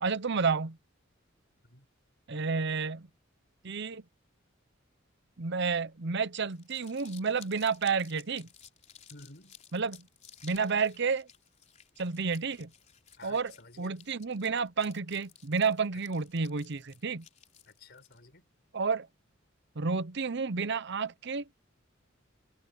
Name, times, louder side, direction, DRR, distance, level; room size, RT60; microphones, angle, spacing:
voice 1, 0.0-0.8 2.3-3.1 3.6-4.0 5.4-8.5 9.7-10.1 10.4-11.3 12.0-12.7 13.2-17.2 18.7-19.1 19.8-21.5, right 5 dB, 60° right, 0.8 m, -30 dB
Crumpling crinkling, 6.4-18.2, left 8 dB, 35° left, 3.9 m, -56 dB
voice 2, 9.1-9.6 13.2-13.9 17.7-18.4, left 2 dB, 55° left, 5.4 m, -52 dB
head